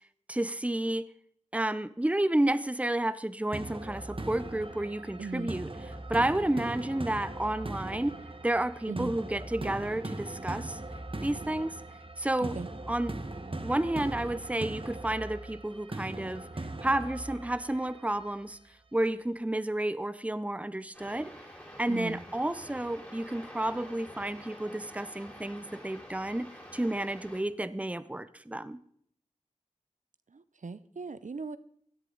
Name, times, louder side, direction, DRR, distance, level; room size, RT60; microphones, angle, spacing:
voice 1, 0.3-1.1 1.5-5.7 6.1-8.2 8.4-10.8 11.2-11.7 12.2-12.6 12.9-13.2 13.6-16.5 16.8-18.6 18.9-21.3 21.8-26.5 26.7-28.8, right 1 dB, 10° right, 15 dB, 0.6 m, -31 dB
sound 1, 3.5-18.5, right 2 dB, 45° right, 1.1 m, -40 dB
voice 2, 5.2-5.5 8.9-9.1 12.4-12.7 21.9-22.2 30.3-31.6, right 4 dB, 80° right, 14 dB, 0.6 m, -38 dB
sound 2, 20.9-27.4, equal, 15° left, 4.2 m, -48 dB
16.5 x 11.0 x 3.8 m, 0.64 s
wide cardioid pair, 45°, 13 cm